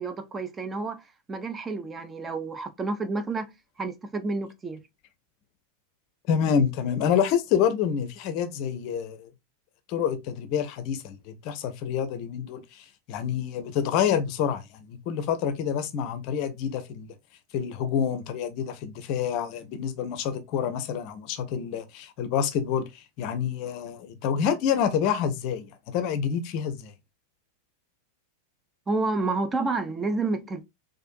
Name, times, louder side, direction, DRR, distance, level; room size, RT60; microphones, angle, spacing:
voice 1, 0.0-3.5 3.8-4.8 28.9-30.6, right 3 dB, 15° right, 0.5 m, -30 dB
voice 2, 6.3-9.3 9.9-17.1 17.5-26.9, left 8 dB, 40° left, 0.6 m, -27 dB
4.3 x 2.5 x 2.6 m
figure-of-eight pair, 90°, 0 cm